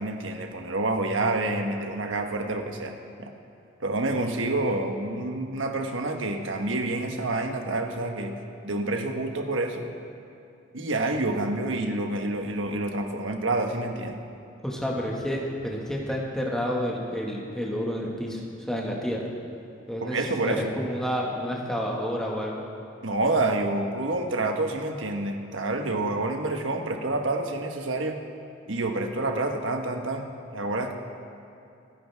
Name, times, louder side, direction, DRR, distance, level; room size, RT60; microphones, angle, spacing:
voice 1, 0.0-3.3 3.8-8.3 8.6-9.9 10.7-14.2 20.0-20.7 23.0-28.2 28.7-30.9, right 2 dB, 80° right, 4 dB, 1.3 m, -28 dB
voice 2, 14.6-19.2 19.9-22.6, equal, 5° left, -3 dB, 1.8 m, -30 dB
27.0 x 10.0 x 3.6 m, 2.7 s
head